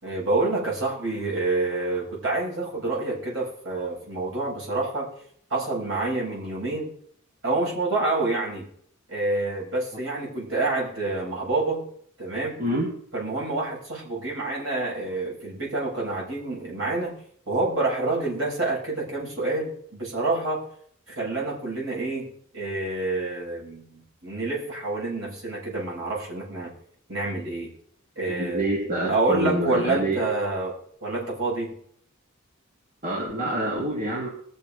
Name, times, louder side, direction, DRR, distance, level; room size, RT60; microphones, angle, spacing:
voice 1, 0.0-5.1 5.5-6.9 7.4-8.7 9.1-11.9 12.2-12.6 13.1-17.2 17.5-20.6 21.1-26.7 27.1-27.7 28.2-28.7 29.0-30.7 31.0-31.8, right 2 dB, 65° right, -3 dB, 7.5 m, -27 dB
voice 2, 12.6-12.9 28.3-30.2 33.0-34.3, right 1 dB, 40° right, -4 dB, 2.9 m, -27 dB
21.0 x 7.4 x 5.4 m, 0.63 s
head